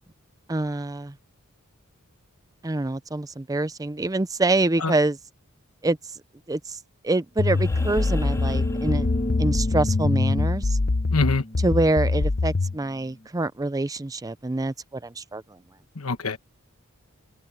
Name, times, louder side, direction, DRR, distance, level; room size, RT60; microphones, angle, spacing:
voice 1, 0.5-1.1 2.6-5.2 5.8-6.0 6.5-6.8 7.0-9.1 9.4-10.8 11.6-15.6, right 2 dB, 15° right, 0.5 m, -26 dB
sound 1, 7.4-12.8, left 3 dB, 50° left, 0.8 m, -24 dB
sound 2, 7.4-9.7 11.6-11.7, left 1 dB, 15° left, 3.8 m, -43 dB
sound 3, 7.5-13.1, left 1 dB, 30° left, 2.3 m, -32 dB
voice 2, 11.1-11.4 16.0-16.4, left 3 dB, 75° left, 1.4 m, -24 dB
open air
head